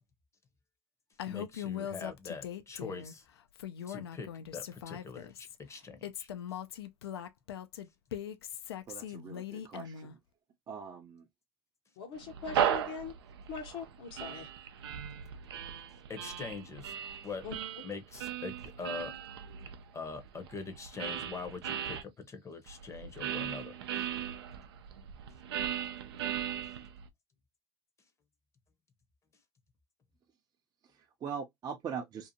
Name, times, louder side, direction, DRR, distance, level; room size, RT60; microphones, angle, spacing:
Female speech woman speaking, 1.2-3.1 3.5-5.5 6.0-10.1, left 10 dB, 90° left, 0.4 m, -41 dB
voice 1, 1.3-3.3 3.9-6.3 16.1-16.9 17.2-17.4 17.8-19.2 19.9-23.8, left 4 dB, 25° left, 0.7 m, -43 dB
voice 2, 8.9-10.2 10.7-11.3 30.8-32.3, right 7 dB, 30° right, 0.5 m, -42 dB
voice 3, 12.0-13.1 13.5-14.5 17.4-17.5, left 5 dB, 70° left, 0.8 m, -42 dB
sound 1, 12.2-22.0 22.7-27.1, right 9 dB, 85° right, 0.5 m, -37 dB
2.6 x 2.4 x 2.6 m
hypercardioid pair, 95°, 13 cm